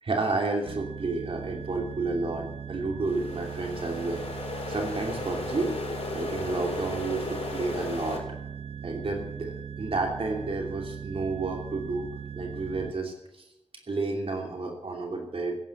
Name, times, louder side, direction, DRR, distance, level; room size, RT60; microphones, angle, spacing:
voice 1, 0.0-4.2 4.7-5.7 6.1-8.2 8.8-12.1 12.3-13.4 13.9-15.6, right 3 dB, 65° right, 1 dB, 2.8 m, -31 dB
sound 1, 0.6-12.9, right 7 dB, 85° right, 0.6 m, -39 dB
sound 2, 3.1-8.2, left 3 dB, 90° left, 4.0 m, -36 dB
16.0 x 9.3 x 8.0 m, 0.92 s
wide cardioid pair, 85°, 10 cm